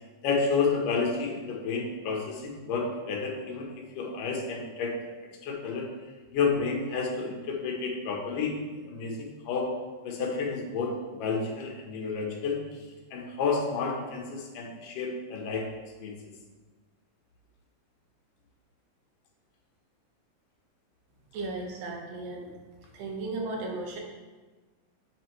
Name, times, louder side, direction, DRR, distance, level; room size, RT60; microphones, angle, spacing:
voice 1, 0.2-5.1 5.4-5.9 6.3-8.5 8.8-9.7 10.0-12.8 13.1-15.7 16.0-16.1, left 4 dB, 75° left, 1 dB, 2.7 m, -30 dB
voice 2, 21.3-22.5 22.9-24.0, right 2 dB, 90° right, 0 dB, 3.0 m, -35 dB
7.8 x 7.8 x 3.1 m, 1.3 s
omnidirectional pair, 3.8 m